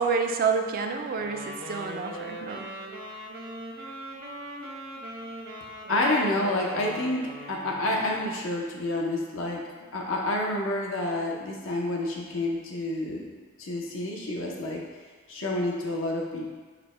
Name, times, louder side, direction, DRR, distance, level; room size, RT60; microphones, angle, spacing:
voice 1, 0.0-2.7, right 5 dB, 45° right, 5 dB, 0.3 m, -28 dB
Wind instrument woodwind instrument, 1.1-8.3, right 1 dB, 70° right, 0.8 m, -40 dB
voice 2, 5.9-7.2 7.5-9.6 9.9-13.2 13.6-14.8 15.3-16.5, left 1 dB, 70° left, -1 dB, 0.7 m, -28 dB
5.0 x 2.1 x 4.3 m, 1.4 s
head